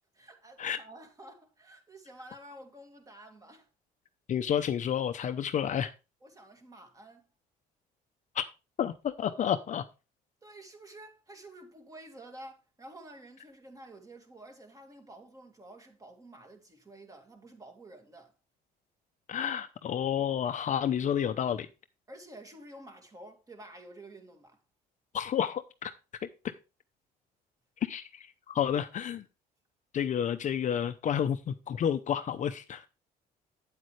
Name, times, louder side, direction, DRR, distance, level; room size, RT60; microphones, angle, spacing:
voice 1, 0.2-3.7 6.2-7.3 10.4-18.3 22.1-24.6, right 1 dB, 20° right, 2.2 m, -50 dB
voice 2, 4.3-5.9 8.3-8.4 8.8-9.8 19.3-21.7 25.1-25.9 27.8-29.2 29.9-32.9, left 9 dB, 45° left, 0.7 m, -30 dB
8.9 x 8.1 x 3.2 m
cardioid pair, 110°, 17 cm